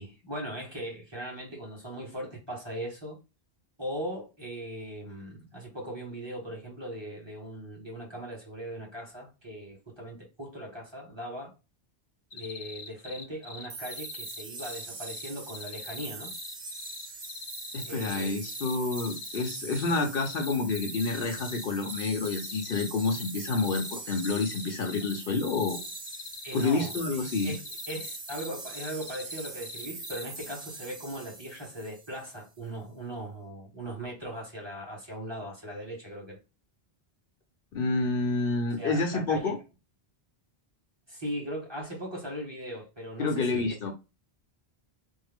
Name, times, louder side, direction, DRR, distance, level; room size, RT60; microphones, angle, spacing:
voice 1, 0.0-3.2 3.8-11.5 12.3-16.3 17.8-18.3 26.4-26.9 27.4-27.6 27.9-36.4 38.8-39.6 41.1-43.7, equal, 25° right, 1.3 m, -39 dB
sound 1, 12.3-30.4, left 4 dB, 90° left, 1.0 m, -43 dB
sound 2, 13.7-32.4, right 3 dB, 60° right, 1.0 m, -42 dB
voice 2, 17.7-25.8 26.5-27.5 37.7-39.6 43.2-43.9, left 3 dB, 65° left, 0.8 m, -29 dB
3.5 x 2.0 x 3.4 m
omnidirectional pair, 1.1 m